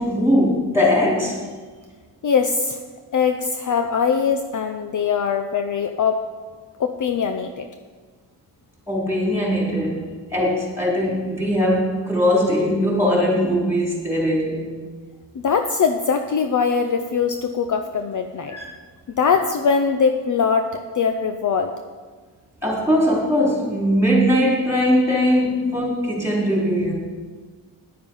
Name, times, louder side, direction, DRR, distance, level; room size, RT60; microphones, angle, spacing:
voice 1, 0.0-1.4 8.9-10.0 10.3-14.8 18.5-18.7 22.6-26.9, equal, 5° right, -3 dB, 3.8 m, -20 dB
voice 2, 2.2-2.8 3.1-6.2 6.8-7.7 15.3-18.5 19.2-21.7, left 6 dB, 45° left, 6 dB, 0.7 m, -21 dB
9.7 x 8.7 x 5.5 m, 1.5 s
cardioid pair, 80°, 43 cm